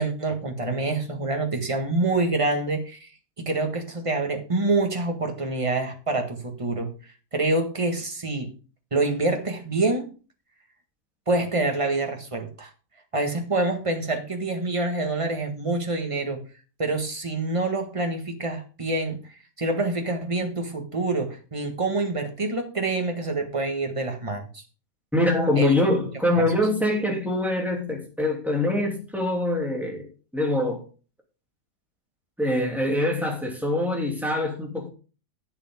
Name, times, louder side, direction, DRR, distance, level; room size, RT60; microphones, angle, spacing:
voice 1, 0.0-3.1 3.4-6.9 7.3-8.5 8.9-10.1 11.3-12.7 13.1-16.4 16.8-24.6 25.6-26.1 26.4-26.5, right 2 dB, 20° right, 1.7 m, -26 dB
voice 2, 25.1-30.1 30.3-30.8 32.4-34.9, left 1 dB, ahead, 2.9 m, -24 dB
11.5 x 8.4 x 3.7 m
omnidirectional pair, 1.7 m